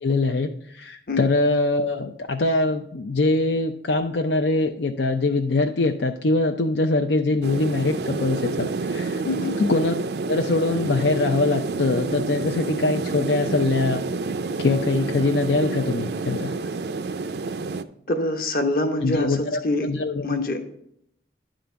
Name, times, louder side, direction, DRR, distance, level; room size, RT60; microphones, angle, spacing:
voice 1, 0.0-9.2 9.6-9.9 10.3-14.0 14.6-16.5 19.0-20.4, left 2 dB, 80° left, 4 dB, 0.5 m, -23 dB
sound 1, 7.4-17.8, right 3 dB, 65° right, 0.5 m, -28 dB
voice 2, 18.1-19.9 20.2-20.6, left 2 dB, 50° left, 6 dB, 1.1 m, -25 dB
10.5 x 3.8 x 6.8 m, 0.70 s
head